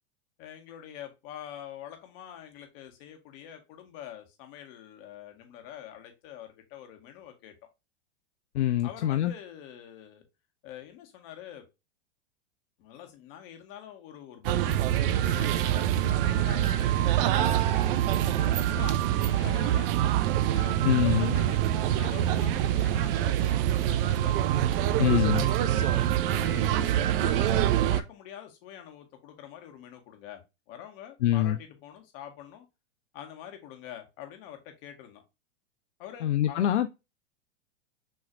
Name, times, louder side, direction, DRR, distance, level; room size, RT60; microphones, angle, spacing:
voice 1, 0.4-7.5 8.8-10.2 10.6-11.6 12.8-19.9 20.5-24.4 24.9-25.9 26.2-30.4 30.7-32.7 33.1-35.2 36.0-36.6, left 10 dB, 50° left, 1.7 m, -45 dB
voice 2, 8.5-9.3 20.8-21.3 25.0-25.5 31.2-31.6 36.2-36.9, left 12 dB, 75° left, 0.5 m, -24 dB
sound 1, 14.4-28.0, right 11 dB, 50° right, 0.7 m, -25 dB
6.3 x 3.1 x 2.5 m
hypercardioid pair, 110°, 35 cm